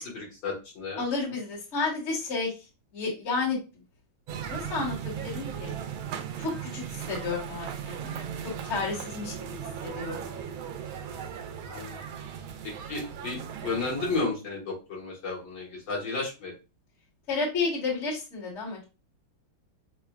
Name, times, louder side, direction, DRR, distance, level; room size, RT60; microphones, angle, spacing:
voice 1, 0.0-1.0 11.7-12.0 12.9-16.5, left 3 dB, 70° left, -2 dB, 2.1 m, -33 dB
voice 2, 1.0-2.5 2.9-3.6 4.5-5.7 6.4-8.3 8.6-9.3 9.8-10.3 17.3-18.8, left 4 dB, 35° left, -3 dB, 1.6 m, -31 dB
sound 1, 4.3-14.2, right 8 dB, 80° right, 1.4 m, -37 dB
6.5 x 2.2 x 2.3 m, 0.30 s
omnidirectional pair, 2.2 m